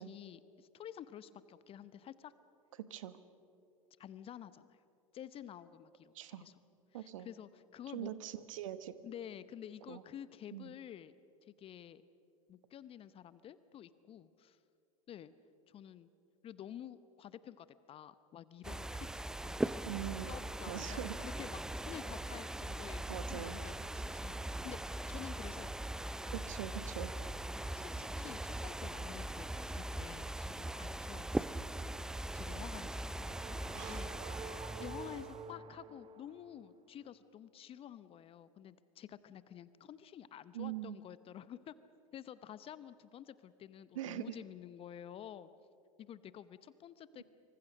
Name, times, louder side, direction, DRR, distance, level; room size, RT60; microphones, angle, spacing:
voice 1, 0.0-2.3 4.0-4.8 5.1-6.5 6.9-8.1 9.0-11.1 11.4-12.0 12.5-14.6 15.1-15.3 15.7-16.1 16.4-19.1 19.4-19.6 19.9-25.7 27.7-31.7 32.3-41.7 42.1-45.5 46.0-47.2, left 10 dB, 30° left, 15 dB, 0.8 m, -50 dB
voice 2, 6.9-7.3 7.9-8.9 9.9-10.0 10.5-10.7 19.8-20.3 20.7-21.1 23.1-23.6 26.3-27.1 33.7-34.1 40.5-41.0 43.9-44.3, right 12 dB, 65° right, 13 dB, 1.3 m, -42 dB
sound 1, 18.6-35.4, right 1 dB, 5° right, 0.5 m, -40 dB
sound 2, 32.4-36.6, right 4 dB, 30° right, 1.5 m, -49 dB
26.0 x 25.0 x 6.4 m, 2.6 s
figure-of-eight pair, 85°, 18 cm